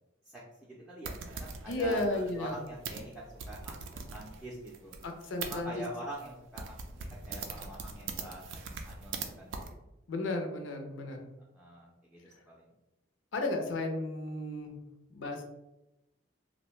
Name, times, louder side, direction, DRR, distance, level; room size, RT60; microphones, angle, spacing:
voice 1, 0.2-4.9 5.4-9.7 11.5-12.2 12.5-12.6, right 1 dB, ahead, -5 dB, 0.4 m, -45 dB
sound 1, 1.0-5.6 6.2-6.3 6.6-9.3 9.5-9.7, right 5 dB, 85° right, 0.4 m, -41 dB
voice 2, 1.7-2.6 5.0-5.8 10.1-11.2 13.3-14.8 15.1-15.4, left 2 dB, 80° left, 4 dB, 0.5 m, -34 dB
2.6 x 2.1 x 3.0 m, 0.95 s
head